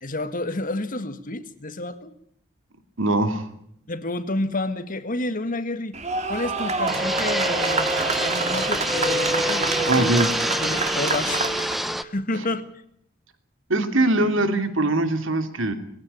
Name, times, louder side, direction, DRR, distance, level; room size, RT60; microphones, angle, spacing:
voice 1, 0.0-2.2 3.9-6.0 6.3-7.9 8.2-10.1 10.5-11.4 11.8-12.7, left 2 dB, 40° left, 11 dB, 1.8 m, -29 dB
voice 2, 3.0-3.4 9.9-10.3 13.7-15.7, right 2 dB, 65° right, 8 dB, 2.8 m, -21 dB
sound 1, 5.9-11.9, right 4 dB, 35° right, 2.8 m, -27 dB
Fixed-wing aircraft airplane, 6.9-12.0, equal, ahead, 0.9 m, -26 dB
21.0 x 16.0 x 10.0 m, 0.70 s
head